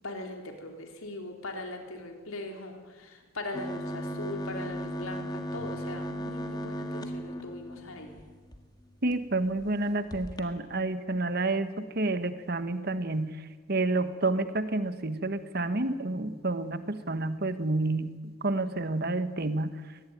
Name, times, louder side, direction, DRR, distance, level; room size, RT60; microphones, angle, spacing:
voice 1, 0.0-8.2, left 2 dB, 80° left, 3 dB, 3.9 m, -40 dB
sound 1, 3.5-8.6 9.1-9.2 9.5-9.7 10.1-10.4, equal, 20° left, 1.7 m, -36 dB
voice 2, 9.0-19.8, right 2 dB, 45° right, 11 dB, 1.3 m, -29 dB
23.5 x 19.0 x 9.3 m, 1.4 s
head